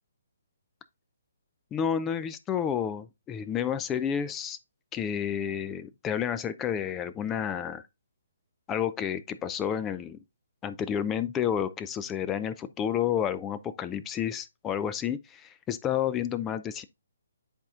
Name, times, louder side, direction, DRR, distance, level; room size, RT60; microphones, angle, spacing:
voice 1, 1.7-4.6 4.9-7.8 8.7-10.2 10.6-16.8, left 8 dB, 15° left, 0.4 m, -30 dB
10.0 x 4.2 x 2.4 m
figure-of-eight pair, 140°, 0 cm